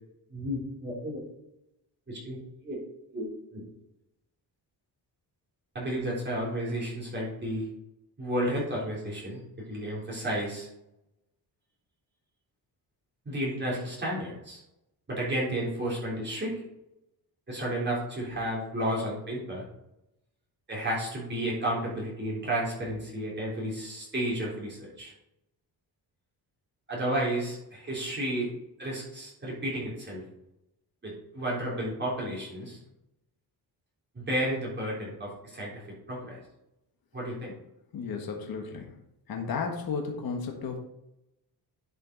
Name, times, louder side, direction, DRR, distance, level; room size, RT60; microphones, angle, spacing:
voice 1, 0.3-1.2 2.1-2.4 2.6-2.8 3.1-3.3 3.5-3.6 5.7-7.7 8.2-9.4 9.7-10.7 13.3-14.6 15.1-16.6 17.5-19.7 20.7-25.1 26.9-28.5 28.8-30.2 31.0-32.8 34.1-35.7 36.1-36.4 37.1-37.5, right 1 dB, 25° right, -5 dB, 3.7 m, -32 dB
voice 2, 37.9-38.9 39.3-40.8, left 5 dB, 60° left, 2 dB, 1.6 m, -33 dB
11.0 x 5.7 x 4.0 m, 0.84 s
cardioid pair, 140°, 39 cm